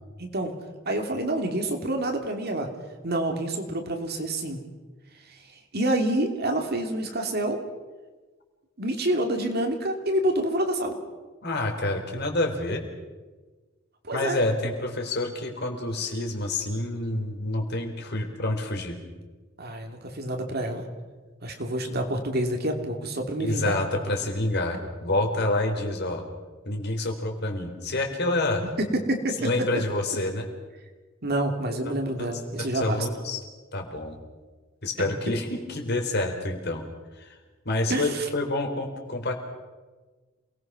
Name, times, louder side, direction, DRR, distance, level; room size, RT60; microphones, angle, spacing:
voice 1, 0.2-0.5 0.8-2.7 3.0-4.6 5.7-7.6 8.8-11.0 14.1-14.4 19.6-20.9 21.4-23.8 28.8-29.3 31.2-33.0 35.0-35.1 37.9-38.2, right 1 dB, 50° right, 4 dB, 2.8 m, -27 dB
voice 2, 11.4-12.8 14.1-19.0 23.4-26.2 26.7-28.6 29.4-30.5 31.9-32.0 32.2-32.3 32.6-33.4 33.7-34.2 34.8-36.8 37.2-37.4 37.7-39.3, left 2 dB, 55° left, 3 dB, 3.8 m, -28 dB
28.0 x 19.5 x 6.2 m, 1.3 s
head